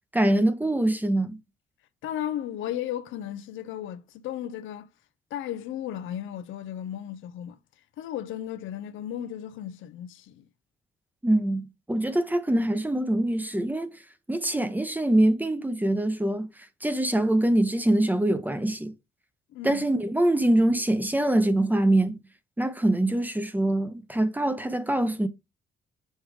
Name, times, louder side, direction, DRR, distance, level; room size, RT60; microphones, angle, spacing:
voice 1, 0.1-1.4 11.2-13.9 14.3-16.5 16.8-18.9 19.6-22.2 22.6-25.3, right 1 dB, 10° right, 0.8 m, -24 dB
voice 2, 2.0-4.9 5.3-7.6 8.0-10.5 19.5-19.8, left 11 dB, 80° left, 0.6 m, -35 dB
6.5 x 3.1 x 4.9 m
cardioid pair, 90°, 20 cm